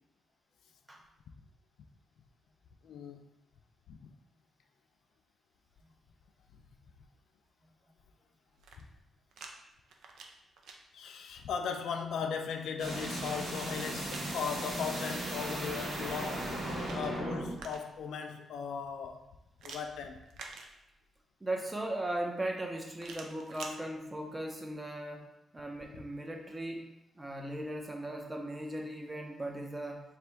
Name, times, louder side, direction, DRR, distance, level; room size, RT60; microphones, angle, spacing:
voice 1, 2.8-3.3 3.9-4.1 10.9-16.7 16.9-19.2 19.6-20.2, left 6 dB, 75° left, 5 dB, 0.4 m, -38 dB
sound 1, 8.5-9.5 9.8-10.8 12.5-14.3 16.3-18.1 19.6-21.2 23.0-23.8, right 4 dB, 90° right, 0.5 m, -49 dB
sound 2, 12.8-17.6, right 1 dB, 50° right, 1.3 m, -36 dB
voice 2, 21.4-25.3 25.5-26.9 27.2-30.0, right 1 dB, 15° right, 1 dB, 0.5 m, -38 dB
3.4 x 2.5 x 4.4 m, 0.88 s
wide cardioid pair, 175°, 0 cm